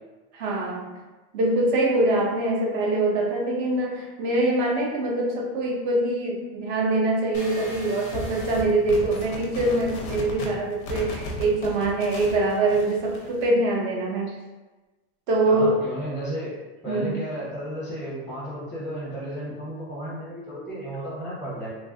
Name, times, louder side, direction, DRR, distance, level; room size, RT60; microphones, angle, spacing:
voice 1, 0.3-1.0 1.3-14.4 15.3-15.9 16.9-17.3, right 2 dB, 30° right, 0 dB, 0.4 m, -24 dB
sound 1, 7.3-13.5, left 1 dB, 35° left, 0.4 m, -36 dB
voice 2, 15.4-16.5 16.8-21.7, right 1 dB, ahead, -9 dB, 0.8 m, -33 dB
3.2 x 2.3 x 2.5 m, 1.2 s
supercardioid pair, 165°, 32 cm